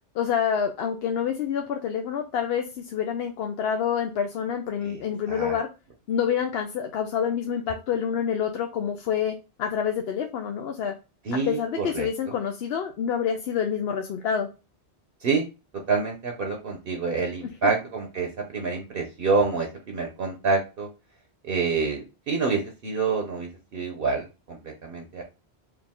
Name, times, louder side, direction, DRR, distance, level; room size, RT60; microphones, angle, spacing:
voice 1, 0.1-5.7 6.1-10.9 11.3-14.5 17.4-17.5, left 8 dB, 70° left, 5 dB, 0.8 m, -27 dB
voice 2, 11.3-12.1 15.2-15.5 15.9-20.9 21.4-25.2, right 4 dB, 60° right, 3 dB, 0.9 m, -27 dB
4.7 x 2.5 x 3.6 m, 0.30 s
omnidirectional pair, 1.1 m